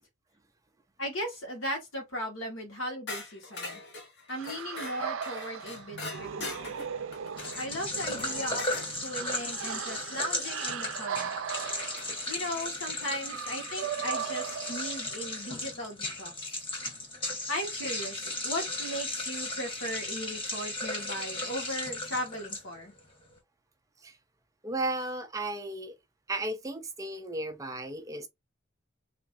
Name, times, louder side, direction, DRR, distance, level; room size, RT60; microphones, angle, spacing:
voice 1, 1.0-3.8 4.3-6.7 7.6-8.6 9.0-11.3 12.3-16.6 17.5-22.9, equal, 90° left, 1.6 m, -37 dB
sound 1, 3.1-8.9 10.9-11.0 12.0-12.4, left 3 dB, 55° left, 1.2 m, -42 dB
sound 2, 4.3-15.4, right 7 dB, 85° right, 0.4 m, -38 dB
sound 3, 7.4-23.0, left 2 dB, 25° left, 1.4 m, -36 dB
voice 2, 24.6-25.9 26.3-28.3, right 2 dB, 15° right, 0.4 m, -34 dB
3.5 x 2.9 x 2.6 m
head